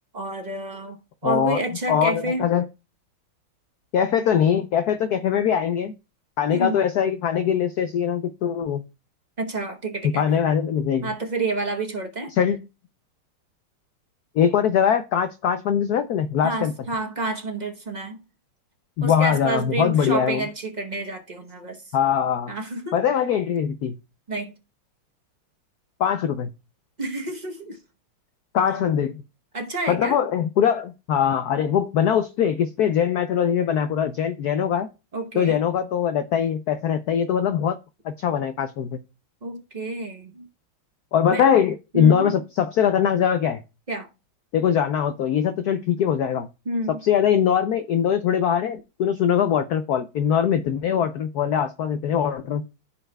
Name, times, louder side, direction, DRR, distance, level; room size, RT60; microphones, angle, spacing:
voice 1, 0.1-2.5 6.5-6.8 9.4-10.2 11.0-12.3 16.4-18.2 19.0-21.9 22.5-22.9 24.3-24.5 27.0-27.8 29.5-30.2 35.1-35.6 39.4-40.5 41.3-41.5 41.9-42.4 43.9-44.1 46.7-47.0, right 2 dB, 50° right, 0.5 m, -29 dB
voice 2, 1.2-1.6 1.9-2.7 3.9-5.9 6.4-8.8 10.1-11.1 12.3-12.6 14.4-16.7 19.0-20.4 21.9-22.5 22.9-24.0 26.0-26.5 28.5-29.2 29.9-34.9 35.3-37.8 38.0-39.0 41.1-43.6 44.5-46.5 47.0-52.6, left 8 dB, 80° left, 0.8 m, -22 dB
15.0 x 5.6 x 2.3 m
omnidirectional pair, 2.4 m